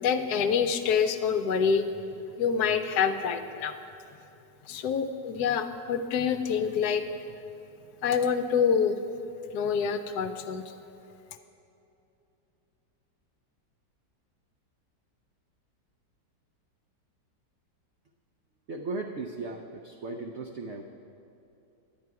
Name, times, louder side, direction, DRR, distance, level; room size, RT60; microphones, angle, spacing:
voice 1, 0.0-1.8 2.4-3.7 4.7-7.0 8.0-9.0 9.5-10.6, left 6 dB, 70° left, 9 dB, 1.0 m, -26 dB
voice 2, 18.7-20.8, right 3 dB, 75° right, 3 dB, 0.6 m, -36 dB
11.0 x 9.6 x 4.6 m, 2.8 s
omnidirectional pair, 1.9 m